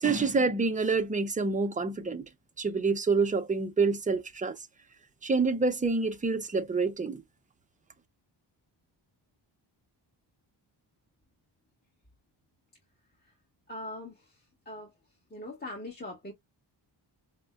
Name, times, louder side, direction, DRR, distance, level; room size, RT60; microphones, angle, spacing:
voice 1, 0.0-2.2 2.6-4.5 5.2-7.2, right 4 dB, 20° right, 0.5 m, -27 dB
voice 2, 13.7-15.0 15.3-16.3, left 1 dB, 20° left, 1.3 m, -42 dB
5.2 x 2.1 x 2.3 m
wide cardioid pair, 150°, 44 cm